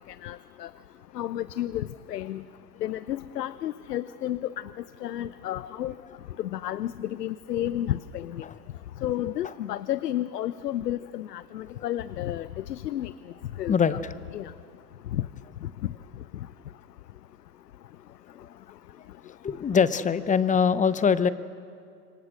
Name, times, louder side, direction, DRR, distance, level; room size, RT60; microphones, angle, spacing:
voice 1, 0.2-0.7 1.1-2.4 2.8-4.5 5.0-5.9 6.4-8.5 9.0-13.1 13.6-14.0 14.3-14.5 15.1-15.2, left 12 dB, 90° left, 16 dB, 0.7 m, -31 dB
voice 2, 13.7-14.1 19.4-21.3, left 6 dB, 15° left, 15 dB, 0.7 m, -23 dB
27.0 x 23.5 x 6.3 m, 2.3 s
hypercardioid pair, 95°, 47 cm